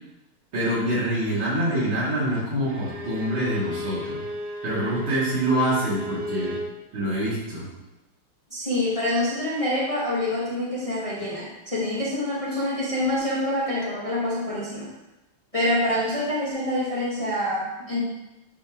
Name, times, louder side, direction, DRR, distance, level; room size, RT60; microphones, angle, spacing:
voice 1, 0.5-4.2 4.6-6.6 6.9-7.7, right 1 dB, 65° right, -9 dB, 3.7 m, -25 dB
Bowed string instrument, 2.6-6.8, left 1 dB, 85° right, 0.5 m, -34 dB
voice 2, 8.5-14.9 15.5-18.0, left 1 dB, 15° left, -8 dB, 1.5 m, -26 dB
10.5 x 4.8 x 3.1 m, 0.98 s
omnidirectional pair, 2.4 m